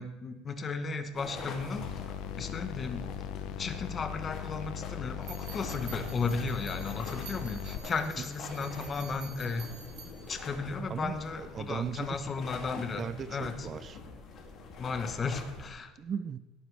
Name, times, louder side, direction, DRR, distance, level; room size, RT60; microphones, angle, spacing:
voice 1, 0.0-1.9 2.4-3.1 3.6-9.7 10.3-13.0 13.3-13.5 14.8-15.9, left 4 dB, 25° left, 9 dB, 1.0 m, -35 dB
sound 1, 1.1-15.7, left 4 dB, 45° left, 2.4 m, -45 dB
sound 2, 1.8-7.8, left 10 dB, 65° left, 0.6 m, -39 dB
sound 3, 5.2-10.3, right 6 dB, 55° right, 3.2 m, -49 dB
voice 2, 10.9-12.2 12.7-14.0 16.0-16.4, right 7 dB, 30° right, 14 dB, 0.4 m, -37 dB
17.0 x 9.4 x 3.3 m, 1.1 s
cardioid pair, 140°, 0 cm